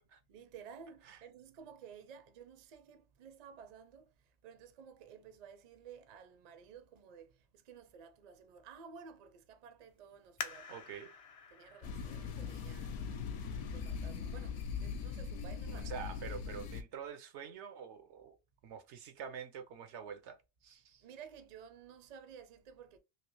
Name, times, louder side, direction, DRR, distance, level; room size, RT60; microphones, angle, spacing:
voice 1, 0.3-10.9 11.5-13.2 13.6-15.9 21.0-23.0, right 7 dB, 50° right, 0.5 m, -54 dB
sound 1, 10.4-13.8 14.4-14.5 15.1-15.5 15.9-16.0, left 5 dB, 50° left, 0.4 m, -48 dB
voice 2, 10.7-11.1 15.7-18.4 18.6-21.1, right 7 dB, 85° right, 1.0 m, -47 dB
sound 2, 11.8-16.8, left 6 dB, 70° left, 0.8 m, -40 dB
3.1 x 2.7 x 3.0 m
omnidirectional pair, 1.2 m